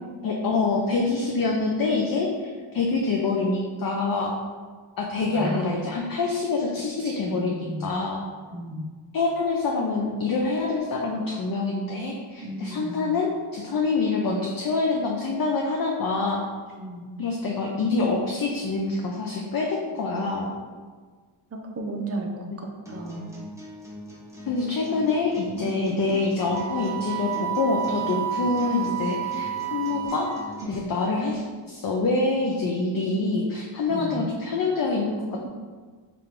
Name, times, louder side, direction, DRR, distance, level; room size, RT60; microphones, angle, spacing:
voice 1, 0.2-4.3 5.0-8.3 9.1-16.4 17.2-20.5 24.5-35.3, left 3 dB, 50° left, 0 dB, 0.5 m, -26 dB
voice 2, 5.3-5.8 7.0-7.9 8.5-8.9 12.4-13.0 16.8-17.1 21.5-23.3 25.5-26.0 28.1-28.3 30.6-31.0 33.9-34.2, right 1 dB, 30° right, 1 dB, 0.6 m, -34 dB
sound 1, 22.9-30.8, equal, 5° right, 0.9 m, -41 dB
Wind instrument woodwind instrument, 26.5-30.7, right 9 dB, 80° right, 0.6 m, -30 dB
3.6 x 2.5 x 4.3 m, 1.5 s
wide cardioid pair, 95°, 48 cm